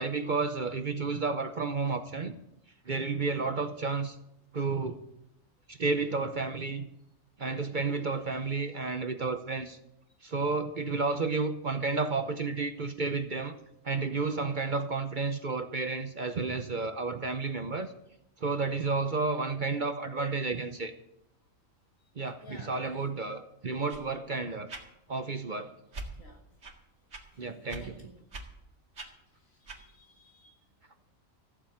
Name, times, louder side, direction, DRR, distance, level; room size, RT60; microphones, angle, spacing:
voice 1, 0.0-2.4 2.9-4.2 4.5-5.0 5.7-6.9 7.4-9.8 10.2-13.6 13.8-17.9 18.4-20.9 22.2-24.7 25.1-25.7 27.4-28.1, right 4 dB, 40° right, 9 dB, 0.9 m, -31 dB
voice 2, 22.4-23.1 26.2-26.4 27.3-27.5 27.8-28.1 29.7-30.5, equal, 80° left, 1 dB, 3.3 m, -53 dB
sound 1, 23.9-24.1 24.7-24.9 25.9-26.1 26.6-26.8 27.1-27.2 27.7-27.8 28.3-28.5 28.9-29.1 29.6-29.8, right 2 dB, 65° right, 2.3 m, -42 dB
15.0 x 7.3 x 8.6 m, 0.82 s
omnidirectional pair, 1.4 m